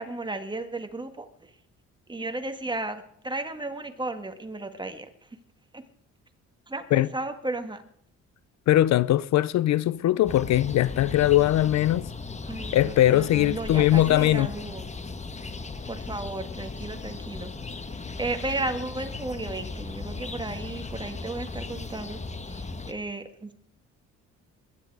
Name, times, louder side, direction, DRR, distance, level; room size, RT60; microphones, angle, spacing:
voice 1, 0.0-1.5 2.1-5.1 5.7-5.8 6.7-7.8 12.5-14.9 15.8-17.5 17.9-22.2 22.4-23.5, right 2 dB, 15° right, 1.8 m, -34 dB
voice 2, 8.7-12.1 12.7-14.5, left 13 dB, 65° left, 0.5 m, -21 dB
sound 1, 10.2-22.9, left 3 dB, 25° left, 1.3 m, -37 dB
21.5 x 10.5 x 4.8 m
cardioid pair, 90°, 30 cm